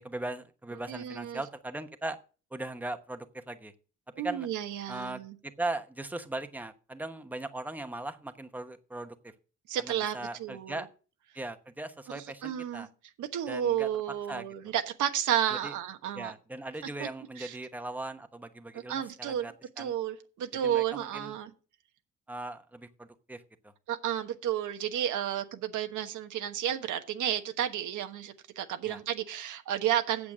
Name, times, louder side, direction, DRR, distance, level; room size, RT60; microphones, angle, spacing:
voice 1, 0.0-2.2 2.5-3.7 4.2-4.5 4.9-9.2 9.8-10.9 11.3-12.9 13.5-13.9 14.3-14.7 15.5-15.7 16.1-19.9 20.6-21.3 22.3-23.4 28.9-29.0, right 2 dB, 5° right, 8 dB, 1.0 m, -39 dB
voice 2, 0.9-1.4 4.2-5.3 9.7-10.8 12.1-12.9 13.2-16.3 17.0-17.1 17.4-17.6 18.9-21.5 23.9-30.3, right 10 dB, 80° right, 8 dB, 1.2 m, -32 dB
8.5 x 7.2 x 6.1 m, 0.37 s
cardioid pair, 90°, 30 cm